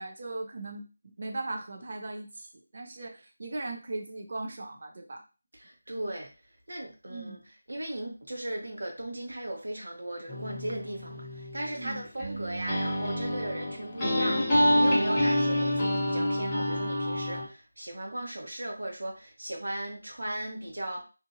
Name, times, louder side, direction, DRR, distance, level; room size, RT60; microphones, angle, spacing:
voice 1, 0.0-5.2 7.1-7.4 11.8-12.0 15.2-15.3, right 2 dB, 35° right, 3 dB, 0.4 m, -38 dB
voice 2, 5.5-6.3 6.7-7.4 7.7-21.1, right 1 dB, 85° right, 1 dB, 1.1 m, -37 dB
sound 1, 10.3-17.4, left 1 dB, 10° left, 0.6 m, -28 dB
2.7 x 2.5 x 2.5 m, 0.33 s
figure-of-eight pair, 180°, 0 cm